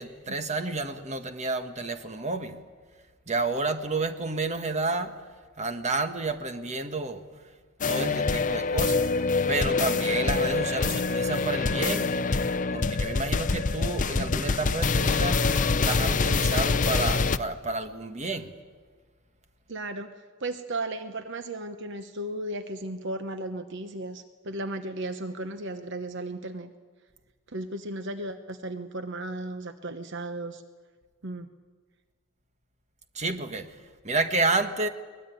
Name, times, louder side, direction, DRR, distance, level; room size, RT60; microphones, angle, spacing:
voice 1, 0.0-2.6 3.3-5.1 5.6-7.2 7.9-9.1 9.5-12.2 12.7-15.4 15.8-18.5 33.1-33.8 34.0-34.9, right 3 dB, 35° right, 8 dB, 1.4 m, -30 dB
sound 1, 7.8-17.4, left 4 dB, 40° left, 0.6 m, -25 dB
voice 2, 19.7-20.1 20.4-26.7 27.5-30.6 31.2-31.5, right 2 dB, 60° right, 9 dB, 1.0 m, -35 dB
23.0 x 20.5 x 9.3 m, 1.6 s
head